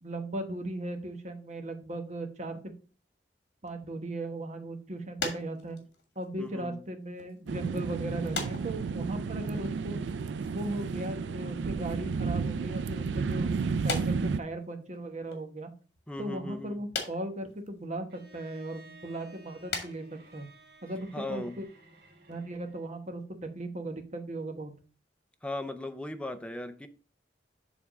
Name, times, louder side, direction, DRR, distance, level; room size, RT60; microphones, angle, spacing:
voice 1, 0.0-2.6 3.6-5.8 6.2-10.0 10.4-13.6 13.8-15.7 16.2-20.0 20.3-20.5 20.8-21.7 22.3-24.7, right 1 dB, 40° right, 1.0 m, -37 dB
sound 1, 5.2-6.9 7.2-7.5 8.3-9.3 9.6-10.7 11.0-11.4 12.3-12.9 13.8-15.0 15.3-15.4 16.9-17.7 18.3-18.4 18.9-19.2 19.6-20.0 20.3-20.5 20.7-21.0 21.6-21.7 22.1-22.2 22.4-22.5, left 4 dB, 65° left, 1.6 m, -39 dB
voice 2, 6.4-6.8 16.1-16.8 21.1-21.6 25.4-26.9, left 2 dB, 5° left, 0.5 m, -37 dB
sound 2, 7.5-14.4, right 5 dB, 90° right, 0.4 m, -32 dB
Bowed string instrument, 18.1-23.0, right 2 dB, 65° right, 1.4 m, -55 dB
7.1 x 3.6 x 4.9 m
head